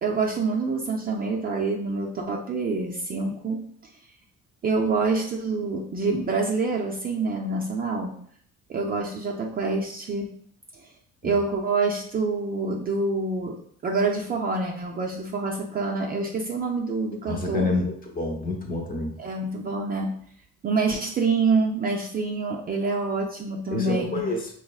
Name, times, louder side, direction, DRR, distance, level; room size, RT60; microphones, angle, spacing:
voice 1, 0.0-3.7 4.6-8.1 8.7-10.3 10.8-10.9 11.2-13.6 13.8-17.7 19.2-20.1 20.6-24.3, right 3 dB, 30° right, 0 dB, 0.4 m, -26 dB
voice 2, 17.3-19.1 23.7-24.5, left 2 dB, 25° left, 1 dB, 0.8 m, -28 dB
4.8 x 3.0 x 2.3 m, 0.64 s
cardioid pair, 135°, 32 cm